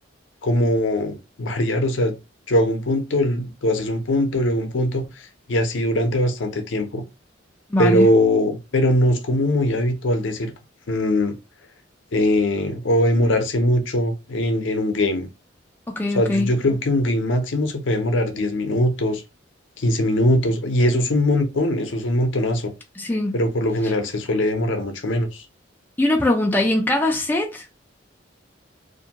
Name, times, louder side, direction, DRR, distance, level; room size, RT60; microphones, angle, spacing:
voice 1, 0.4-2.2 2.5-7.0 7.8-10.5 10.9-11.4 12.1-15.3 16.1-19.2 19.8-22.7 23.3-25.4, left 1 dB, 65° left, 0.6 m, -21 dB
voice 2, 7.7-8.1 15.9-16.6 23.0-23.4 26.0-27.7, left 1 dB, 10° left, 0.3 m, -21 dB
2.5 x 2.2 x 2.8 m
head